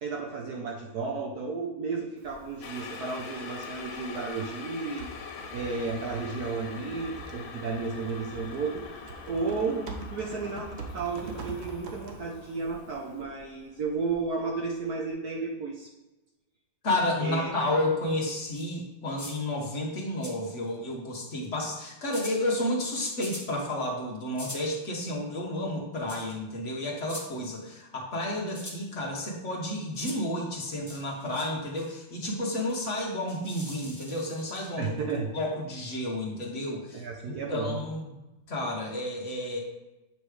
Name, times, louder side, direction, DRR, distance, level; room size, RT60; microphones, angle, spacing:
voice 1, 0.0-5.1 5.5-10.7 10.9-15.9 17.2-17.5 34.8-35.3 36.9-37.8, right 4 dB, 65° right, 0 dB, 1.1 m, -33 dB
Typing, 2.2-13.2, right 3 dB, 80° right, 0.5 m, -45 dB
sound 1, 2.6-14.7 15.0-15.1, left 5 dB, 80° left, 1.5 m, -44 dB
voice 2, 16.8-34.9 35.3-38.1 38.5-39.6, left 1 dB, 40° left, -2 dB, 1.4 m, -31 dB
sound 2, 18.5-18.7 19.2-19.4 20.2-20.7 21.4-21.7 22.1-22.4 23.2-23.5 24.3-24.7 26.1-26.4 27.0-27.3 28.5-28.8 29.9-30.2 30.9-31.5 31.8-31.9 32.5-35.2, left 1 dB, 20° left, 0.5 m, -43 dB
8.1 x 3.1 x 4.9 m, 1.0 s
omnidirectional pair, 2.2 m